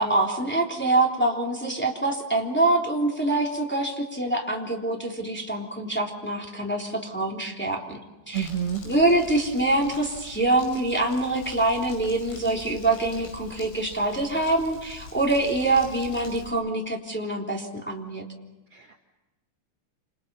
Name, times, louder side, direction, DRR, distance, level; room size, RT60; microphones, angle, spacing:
voice 1, 0.0-8.0 8.3-8.5 8.8-18.2, right 2 dB, 5° left, -1 dB, 2.5 m, -25 dB
Crumpling crinkling, 8.3-16.5, left 3 dB, 90° left, 7.9 m, -45 dB
voice 2, 8.3-8.8 18.7-19.0, right 9 dB, 70° right, 2 dB, 1.4 m, -29 dB
29.0 x 28.5 x 5.6 m, 1.1 s
omnidirectional pair, 5.4 m